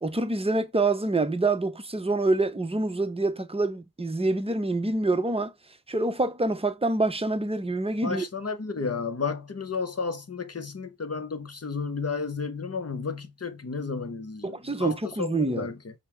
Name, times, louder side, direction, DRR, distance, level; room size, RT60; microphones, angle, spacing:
voice 1, 0.0-5.5 5.9-8.2 14.4-15.7, right 2 dB, 15° right, 0.6 m, -26 dB
voice 2, 8.0-15.9, left 4 dB, 35° left, 0.8 m, -32 dB
5.3 x 2.1 x 4.4 m
wide cardioid pair, 45°, 40 cm